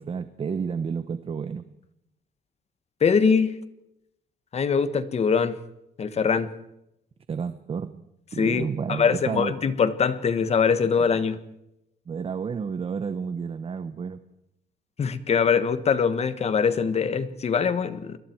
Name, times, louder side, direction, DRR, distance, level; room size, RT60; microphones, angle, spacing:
voice 1, 0.0-1.6 7.3-8.0 8.3-9.5 12.1-14.2, right 6 dB, 35° right, 12 dB, 1.0 m, -31 dB
voice 2, 3.0-3.5 4.5-5.6 6.0-6.5 8.4-11.4 15.0-18.2, left 6 dB, 40° left, 13 dB, 1.5 m, -23 dB
29.0 x 22.0 x 4.7 m, 0.84 s
cardioid pair, 145°, 17 cm